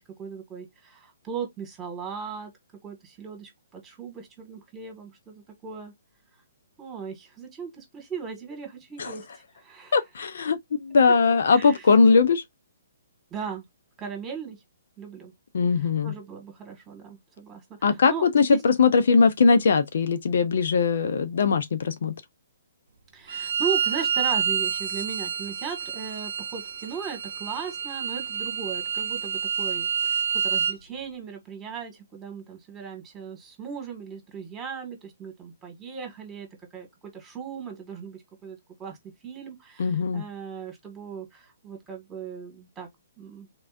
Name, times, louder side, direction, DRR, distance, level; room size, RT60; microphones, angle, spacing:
voice 1, 0.0-2.5 2.8-5.9 6.8-9.3 9.6-10.0 11.5-11.9 13.3-13.6 14.0-14.6 15.0-15.3 15.8-18.6 23.1-36.5 36.7-39.0 39.2-42.9 43.2-43.5, right 6 dB, 15° right, 1.8 m, -38 dB
voice 2, 9.9-12.4 15.5-16.1 17.8-22.1 39.8-40.2, left 5 dB, 65° left, 0.6 m, -20 dB
Bowed string instrument, 23.3-30.8, right 7 dB, 70° right, 0.7 m, -28 dB
3.8 x 3.3 x 2.5 m
hypercardioid pair, 140°, 0 cm